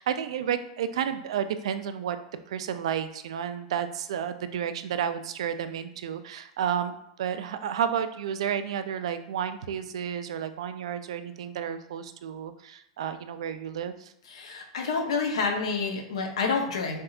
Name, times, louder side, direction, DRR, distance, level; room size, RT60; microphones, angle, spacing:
voice 1, 0.0-2.2 2.5-14.1, right 8 dB, 80° right, 10 dB, 0.3 m, -31 dB
voice 2, 14.3-17.0, left 4 dB, 85° left, 2 dB, 0.7 m, -28 dB
3.5 x 2.7 x 2.3 m, 0.78 s
hypercardioid pair, 115°, 3 cm